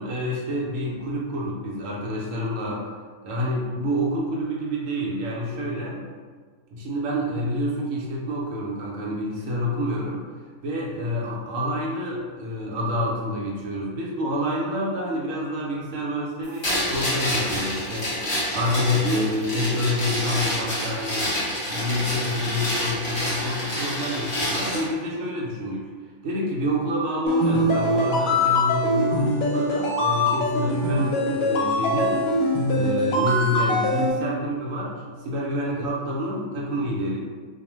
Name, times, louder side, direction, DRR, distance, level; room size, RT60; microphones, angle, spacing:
voice 1, 0.0-2.9 3.2-6.1 6.7-10.2 10.6-21.3 21.7-25.9 26.2-32.2 32.7-37.2, left 1 dB, 70° right, -3 dB, 0.9 m, -28 dB
sound 1, 16.6-24.9, equal, 35° left, 0.7 m, -28 dB
sound 2, 27.3-34.1, left 1 dB, 70° left, 0.9 m, -23 dB
2.5 x 2.1 x 3.0 m, 1.5 s
omnidirectional pair, 1.6 m